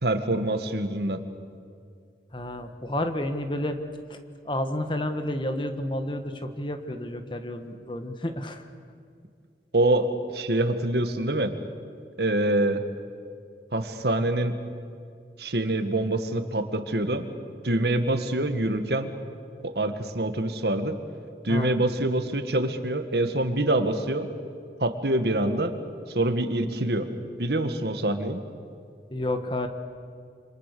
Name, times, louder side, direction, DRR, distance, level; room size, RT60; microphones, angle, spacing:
voice 1, 0.0-1.2 9.7-11.5 12.2-12.8 13.7-14.5 15.4-17.2 17.6-19.1 19.6-21.0 21.4-24.3 24.8-25.7 26.1-27.1 27.4-28.4, right 1 dB, 70° right, 8 dB, 1.7 m, -25 dB
voice 2, 2.3-3.8 4.1-4.2 4.4-8.6 21.5-21.8 29.1-29.7, left 1 dB, 25° left, 7 dB, 1.4 m, -30 dB
28.0 x 26.0 x 6.8 m, 2.3 s
head